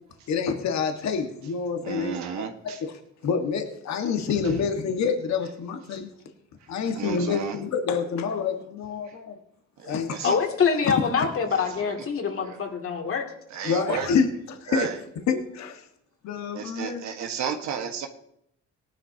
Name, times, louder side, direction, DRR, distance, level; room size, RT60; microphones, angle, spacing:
voice 1, 0.3-2.4 3.2-6.1 6.7-9.4 9.8-10.4 10.8-10.9 13.6-14.9 15.3-15.8 16.2-17.0, left 6 dB, 70° left, 1.6 m, -27 dB
voice 2, 1.8-2.8 4.4-4.6 5.4-5.5 5.9-6.0 6.6-6.7 6.9-7.6 9.0-9.2 9.8-10.4 11.5-12.1 12.4-12.6 13.5-14.1 14.7-15.0 16.5-18.1, right 7 dB, 75° right, 1.5 m, -33 dB
voice 3, 10.2-13.3, left 6 dB, 50° left, 2.6 m, -25 dB
18.5 x 11.0 x 2.9 m
cardioid pair, 110°, 29 cm